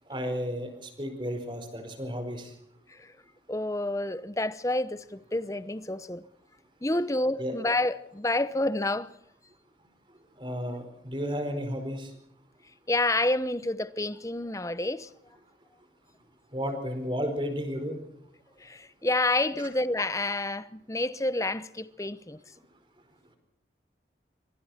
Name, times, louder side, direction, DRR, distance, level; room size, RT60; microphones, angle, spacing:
voice 1, 0.1-2.5 7.4-7.6 10.4-12.1 16.5-18.0, equal, 25° right, 4.7 m, -33 dB
voice 2, 3.5-6.2 6.8-9.1 12.9-15.1 18.6-22.4, left 2 dB, 15° left, 0.9 m, -29 dB
25.5 x 24.5 x 4.3 m
head